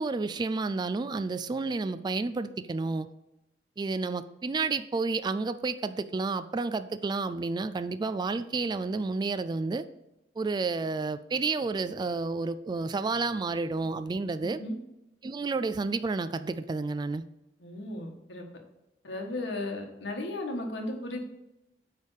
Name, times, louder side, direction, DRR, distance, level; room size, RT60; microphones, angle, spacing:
voice 1, 0.0-3.1 3.8-9.9 10.4-14.6 15.2-17.2, right 3 dB, 25° right, 11 dB, 0.3 m, -30 dB
voice 2, 14.4-14.7 17.6-18.4 19.0-21.2, left 1 dB, 85° left, 2 dB, 1.5 m, -35 dB
9.5 x 3.5 x 6.5 m, 0.94 s
head